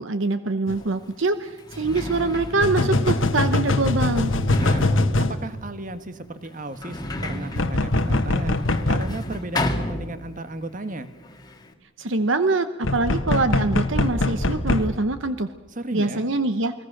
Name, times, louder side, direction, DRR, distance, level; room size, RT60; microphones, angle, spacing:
voice 1, 0.0-4.3 12.0-15.5 15.9-16.7, right 3 dB, 65° right, 10 dB, 1.0 m, -24 dB
sound 1, 0.7-0.8 2.6-5.4 7.6-9.1 12.8-14.9, left 2 dB, 70° left, 1.4 m, -22 dB
Sliding door, 0.8-0.9 1.5-10.6 10.9-11.7, left 1 dB, 20° left, 1.9 m, -32 dB
voice 2, 4.4-11.1 15.7-16.2, right 2 dB, 40° right, 11 dB, 1.4 m, -35 dB
29.0 x 21.0 x 6.6 m, 1.3 s
head